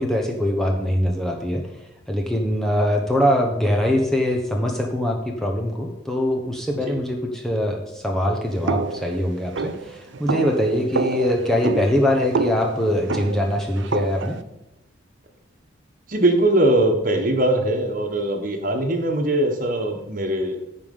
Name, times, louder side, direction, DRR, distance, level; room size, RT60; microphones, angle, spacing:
voice 1, 0.0-1.7 2.1-14.4, left 1 dB, ahead, 0 dB, 1.0 m, -23 dB
sound 1, 8.7-14.4, right 4 dB, 65° right, 0.6 m, -28 dB
voice 2, 16.1-20.6, right 1 dB, 40° right, 4 dB, 1.4 m, -21 dB
14.5 x 5.2 x 5.5 m, 0.90 s
head